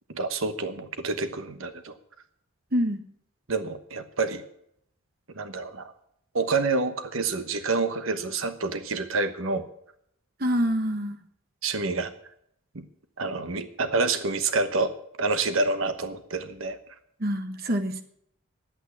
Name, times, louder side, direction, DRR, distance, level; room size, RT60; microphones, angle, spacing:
voice 1, 0.1-2.0 3.5-4.4 5.4-5.9 6.3-9.7 11.6-12.1 12.7-12.8 13.2-14.9 15.2-16.8, right 3 dB, 80° right, 10 dB, 1.1 m, -28 dB
voice 2, 10.4-11.2 17.2-18.0, equal, 45° right, 8 dB, 1.2 m, -26 dB
11.0 x 8.8 x 9.5 m, 0.71 s
head